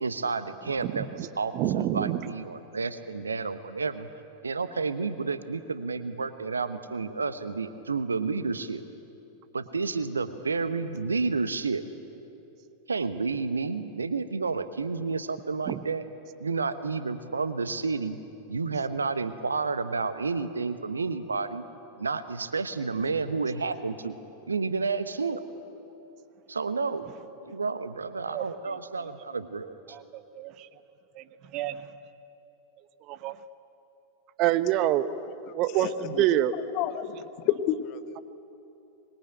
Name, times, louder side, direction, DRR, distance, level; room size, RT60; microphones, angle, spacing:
voice 1, 0.0-4.1 4.4-8.8 9.5-11.8 12.9-16.0 16.4-18.2 18.5-21.6 22.0-24.2 24.5-25.4 26.5-27.1 27.5-30.0, right 4 dB, 75° right, 12 dB, 1.2 m, -30 dB
voice 2, 1.5-2.2 15.7-15.8 28.3-28.4 29.9-30.5 31.2-31.3 31.5-31.8 33.1-33.4 34.4-35.1 35.5-36.5, right 13 dB, 40° right, 14 dB, 1.1 m, -26 dB
voice 3, 35.7-36.2 36.5-38.2, left 12 dB, 40° left, 11 dB, 1.2 m, -31 dB
25.0 x 22.0 x 9.0 m, 2.9 s
figure-of-eight pair, 90°, 0 cm